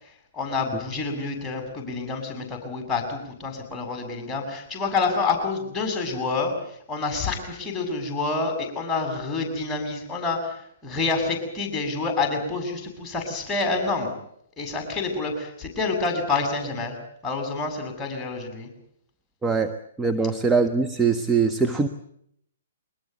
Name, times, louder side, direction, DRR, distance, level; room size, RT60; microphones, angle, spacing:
voice 1, 0.3-14.1 14.6-17.0 17.2-18.7, left 4 dB, 15° left, 4 dB, 7.5 m, -28 dB
voice 2, 19.4-19.7 20.0-21.9, right 4 dB, 10° right, 6 dB, 1.2 m, -22 dB
23.5 x 20.5 x 8.2 m, 0.70 s
figure-of-eight pair, 125°, 0 cm